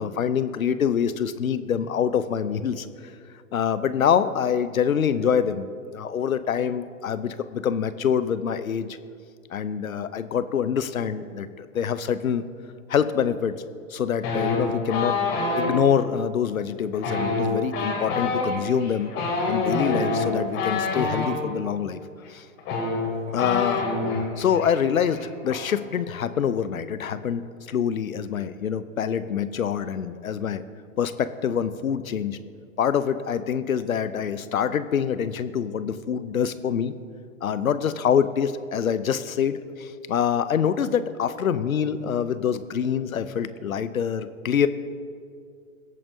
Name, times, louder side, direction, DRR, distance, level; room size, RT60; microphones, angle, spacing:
voice 1, 0.0-2.9 3.5-9.0 9.5-12.4 12.9-13.5 13.9-15.2 15.6-19.1 19.5-22.0 22.3-22.4 23.3-23.8 24.1-30.6 31.0-32.4 32.8-36.9 37.4-44.7, left 8 dB, 75° left, 13 dB, 0.8 m, -25 dB
sound 1, 14.2-15.7 16.9-21.3 22.3-22.4 22.6-24.2 24.5-24.8 25.0-25.5, left 3 dB, 30° left, 2.7 m, -26 dB
22.0 x 8.6 x 2.7 m, 2.2 s
figure-of-eight pair, 115°, 42 cm